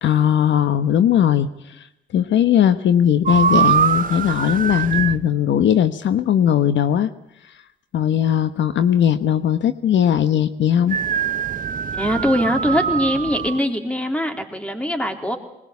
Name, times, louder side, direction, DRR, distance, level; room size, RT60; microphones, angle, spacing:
voice 1, 0.0-1.9 2.1-7.1 7.9-11.0, left 9 dB, 70° left, 12 dB, 1.1 m, -18 dB
sound 1, 3.3-5.2 10.9-13.6, right 7 dB, 45° right, 1.1 m, -22 dB
voice 2, 11.9-15.4, equal, 5° left, 5 dB, 3.7 m, -22 dB
21.0 x 20.5 x 8.4 m, 0.86 s
cardioid pair, 90°, 20 cm